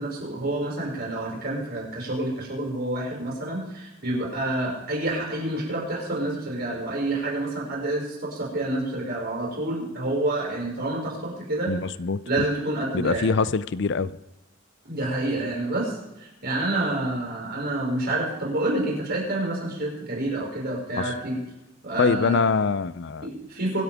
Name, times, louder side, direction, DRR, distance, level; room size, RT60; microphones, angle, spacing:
voice 1, 0.0-11.7 12.3-13.3 14.8-21.4 21.8-22.4 23.2-23.8, right 1 dB, 50° right, -3 dB, 5.8 m, -28 dB
voice 2, 11.7-12.2 12.9-14.1 21.0-21.1 22.0-23.3, left 4 dB, 60° left, 16 dB, 0.5 m, -24 dB
25.0 x 8.6 x 3.6 m, 0.97 s
head